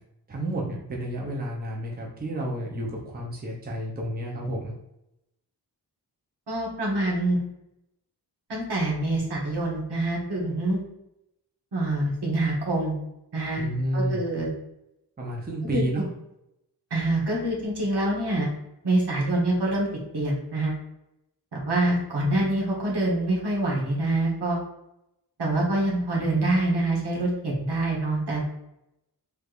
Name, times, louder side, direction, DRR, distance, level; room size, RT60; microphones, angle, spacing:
voice 1, 0.3-4.7 13.5-14.2 15.2-16.0, right 1 dB, 25° right, -2 dB, 0.7 m, -30 dB
voice 2, 6.5-7.4 8.5-10.8 11.7-13.0 13.3-13.6 13.9-14.5 15.7-15.8 16.9-18.5 18.8-19.9 20.1-20.8 21.5-24.6 25.4-28.4, right 2 dB, 75° right, -3 dB, 1.3 m, -25 dB
3.3 x 3.2 x 2.5 m, 0.85 s
wide cardioid pair, 110°, 40 cm